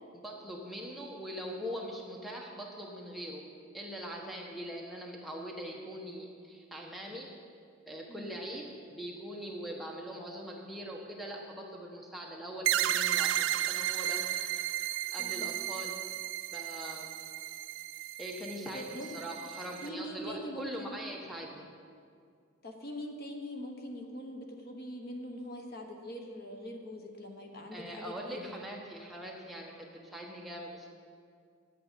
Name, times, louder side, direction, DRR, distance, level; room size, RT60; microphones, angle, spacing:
voice 1, 0.2-3.5 3.7-7.3 7.9-14.3 15.1-16.0 16.5-17.2 18.2-21.7 27.7-30.9, equal, ahead, -2 dB, 1.1 m, -42 dB
voice 2, 8.1-8.4 15.2-15.5 18.7-19.1 19.8-21.0 22.6-28.4, equal, 50° left, 2 dB, 1.2 m, -43 dB
sound 1, 12.6-19.9, right 13 dB, 70° right, 0.3 m, -33 dB
10.0 x 8.6 x 6.8 m, 2.2 s
head